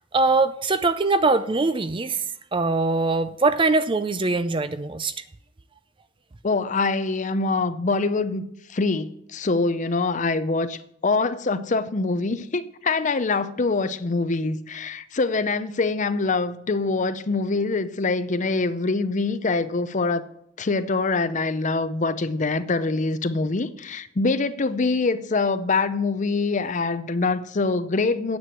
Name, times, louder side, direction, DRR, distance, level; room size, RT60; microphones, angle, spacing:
voice 1, 0.1-2.2 2.5-5.1, right 3 dB, 25° right, 0.5 m, -22 dB
voice 2, 6.4-20.2 20.6-28.4, left 3 dB, 35° left, 0.6 m, -24 dB
9.6 x 7.7 x 7.7 m
head